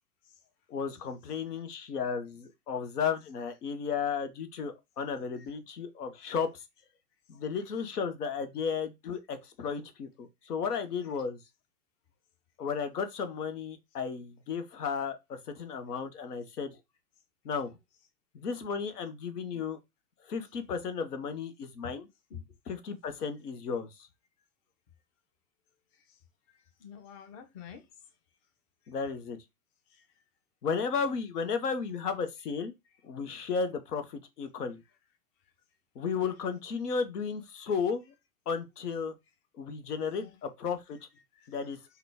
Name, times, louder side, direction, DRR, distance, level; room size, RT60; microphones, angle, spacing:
voice 1, 0.7-6.6 7.3-11.4 12.6-16.8 17.4-17.7 18.3-19.8 20.3-22.1 22.7-23.9 28.9-29.4 30.6-32.7 33.0-34.8 36.0-38.1 38.5-39.1 39.6-41.0 41.5-41.8, left 6 dB, 75° left, 0.8 m, -34 dB
voice 2, 26.5-27.9 29.9-30.1 39.9-40.4 41.3-41.5, left 8 dB, 25° left, 0.6 m, -49 dB
3.7 x 2.2 x 3.4 m
hypercardioid pair, 115°, 47 cm